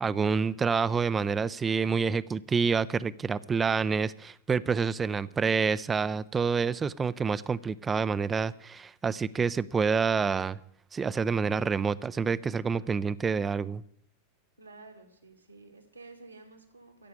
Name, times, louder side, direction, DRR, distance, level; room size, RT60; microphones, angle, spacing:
voice 1, 0.0-10.6 10.9-13.8, right 5 dB, 20° right, 17 dB, 0.5 m, -28 dB
voice 2, 14.6-17.1, right 3 dB, 80° right, 3 dB, 2.4 m, -51 dB
15.5 x 6.8 x 8.6 m, 0.67 s
figure-of-eight pair, 90°, 0 cm